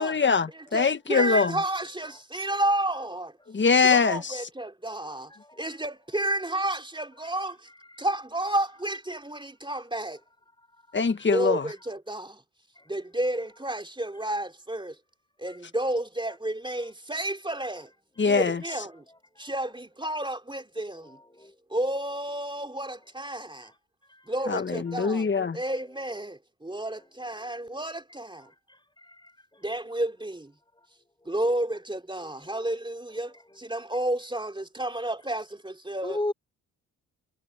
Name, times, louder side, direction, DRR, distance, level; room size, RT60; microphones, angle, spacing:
voice 1, 0.0-1.6 3.5-4.3 10.9-11.7 18.2-18.6 24.5-25.6, left 5 dB, 30° left, 1.6 m, -23 dB
voice 2, 0.5-3.3 3.8-5.3 5.6-7.7 8.0-10.2 11.3-12.4 12.9-15.0 15.4-17.9 18.2-19.0 19.4-21.2 21.7-23.7 24.3-28.5 29.6-30.5 31.2-36.2, right 1 dB, 15° right, 3.3 m, -31 dB
voice 3, 5.0-5.7 7.9-8.1 12.8-12.9 15.5-15.6 19.3-19.5 21.0-21.5 23.6-23.7 24.1-24.2 27.4-27.5 28.7-29.6 31.2-31.4 32.2-32.7 36.0-36.3, left 2 dB, 10° left, 6.4 m, -38 dB
hypercardioid pair, 55°, 37 cm